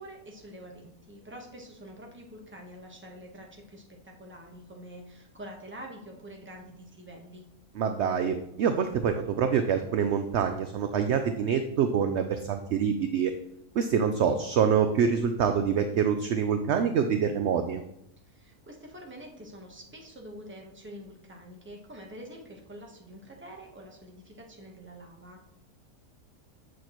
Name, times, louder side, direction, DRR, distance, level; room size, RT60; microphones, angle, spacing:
voice 1, 0.0-7.4 18.3-25.4, equal, 10° right, 0 dB, 1.0 m, -46 dB
voice 2, 7.7-13.3 13.8-17.8, right 7 dB, 65° right, 7 dB, 0.7 m, -26 dB
8.3 x 6.2 x 3.0 m, 0.80 s
omnidirectional pair, 1.5 m